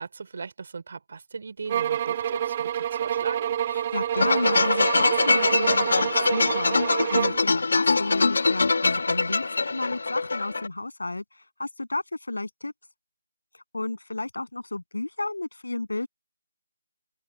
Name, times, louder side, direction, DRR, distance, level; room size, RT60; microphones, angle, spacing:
voice 1, 0.0-3.5, right 5 dB, 45° right, 3.1 m, -38 dB
sound 1, 1.7-7.5, right 10 dB, 25° right, 2.1 m, -27 dB
voice 2, 3.7-12.7 13.5-16.1, left 2 dB, 90° left, 7.6 m, -32 dB
sound 2, 4.1-10.7, left 3 dB, 60° left, 1.0 m, -23 dB
open air
figure-of-eight pair, 170°, 0 cm